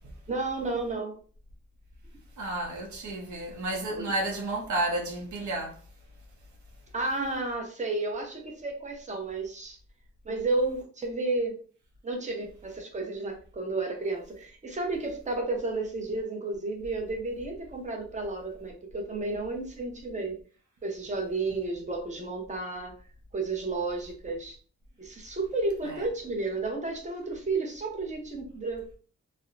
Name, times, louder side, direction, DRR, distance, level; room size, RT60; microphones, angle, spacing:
voice 1, 0.3-1.1 4.0-4.1 6.9-9.8 10.2-11.6 12.0-20.4 20.8-22.9 23.3-24.6 25.0-29.0, right 3 dB, 25° right, 0.7 m, -32 dB
voice 2, 2.4-5.8 25.9-26.1, right 2 dB, 80° right, 0.6 m, -31 dB
2.6 x 2.0 x 2.4 m
cardioid pair, 65°, 30 cm